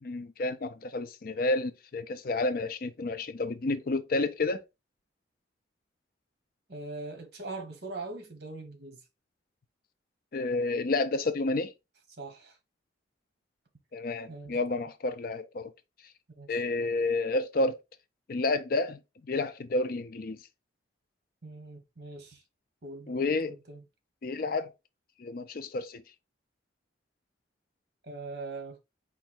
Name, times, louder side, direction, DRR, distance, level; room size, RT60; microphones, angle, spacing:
voice 1, 0.0-4.6 10.3-11.7 13.9-15.7 16.5-17.8 18.3-19.0 19.3-20.4 23.1-23.6 24.2-24.7 25.2-26.0, left 2 dB, 50° left, 0.4 m, -30 dB
voice 2, 6.7-9.0 12.2-12.6 14.3-14.6 16.4-16.6 21.4-22.4 22.8-23.8 28.0-28.8, right 3 dB, 55° right, 1.3 m, -41 dB
4.6 x 2.5 x 4.2 m
head